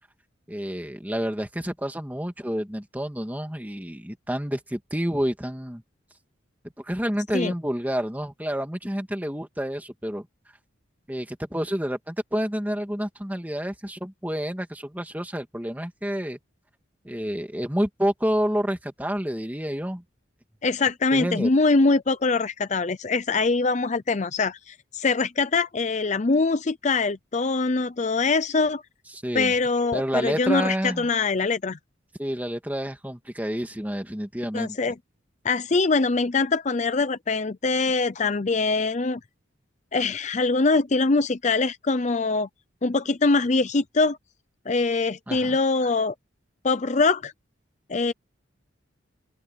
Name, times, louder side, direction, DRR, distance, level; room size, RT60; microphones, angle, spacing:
voice 1, 0.5-5.8 6.8-10.3 11.1-16.4 17.0-20.0 21.1-21.5 29.2-29.5 29.9-31.1 32.2-34.9 45.3-45.6, equal, 10° right, 2.2 m, -29 dB
voice 2, 20.6-28.8 29.3-31.8 34.5-34.9 35.4-39.2 39.9-42.5 42.8-44.2 44.7-46.1 46.6-47.3 47.9-48.1, left 3 dB, 40° left, 0.6 m, -23 dB
open air
head